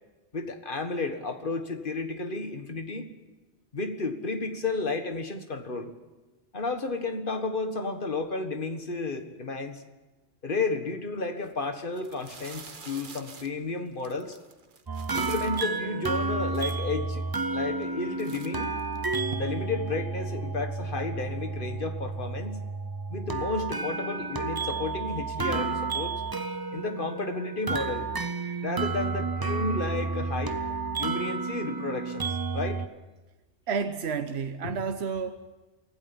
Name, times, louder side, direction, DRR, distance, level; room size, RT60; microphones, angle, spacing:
voice 1, 0.3-3.1 3.7-5.9 6.5-9.8 10.4-14.4 15.1-17.2 17.5-18.7 19.3-22.6 23.1-26.2 26.7-28.1 28.6-30.6 31.0-32.8 34.6-34.8, left 3 dB, 50° left, 7 dB, 1.8 m, -32 dB
sound 1, 11.3-11.5 11.9-15.7 16.2-16.3 16.5-17.2 17.7-17.9 18.2-19.4, right 5 dB, 50° right, 1.3 m, -46 dB
sound 2, 14.9-32.9, right 4 dB, 25° right, 0.6 m, -31 dB
voice 2, 33.7-35.3, right 6 dB, 70° right, 7 dB, 1.1 m, -30 dB
24.5 x 16.5 x 7.2 m, 1.2 s
omnidirectional pair, 1.1 m